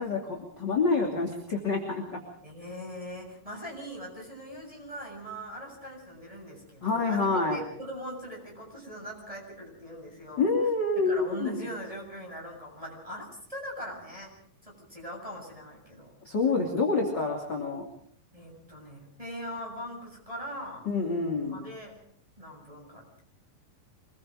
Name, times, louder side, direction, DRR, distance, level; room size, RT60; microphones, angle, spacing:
voice 1, 0.0-2.2 6.8-7.6 10.4-11.7 16.2-17.9 20.8-21.6, left 3 dB, 30° left, -1 dB, 3.2 m, -27 dB
voice 2, 2.4-10.5 11.0-14.4 14.6-16.1 18.3-20.9 21.4-22.0 22.4-23.2, equal, 10° right, 0 dB, 7.2 m, -41 dB
25.5 x 22.0 x 5.0 m, 0.63 s
omnidirectional pair, 4.1 m